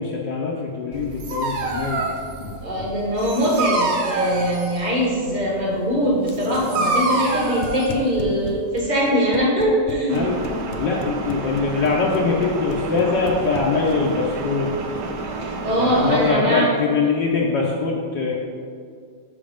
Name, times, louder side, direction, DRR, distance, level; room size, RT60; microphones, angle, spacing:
voice 1, 0.0-2.1 2.4-2.8 10.1-10.4 10.8-14.7 15.8-18.3, left 4 dB, 65° left, -3 dB, 1.3 m, -23 dB
Dog, 0.9-8.8, right 3 dB, 80° right, 1.7 m, -27 dB
voice 2, 2.6-10.3 15.4-16.7, equal, 25° right, -3 dB, 1.2 m, -22 dB
sound 1, 6.2-14.2, left 8 dB, 80° left, 1.5 m, -37 dB
sound 2, 10.1-16.3, right 3 dB, 65° right, 1.2 m, -30 dB
6.0 x 5.3 x 5.0 m, 2.2 s
omnidirectional pair, 2.2 m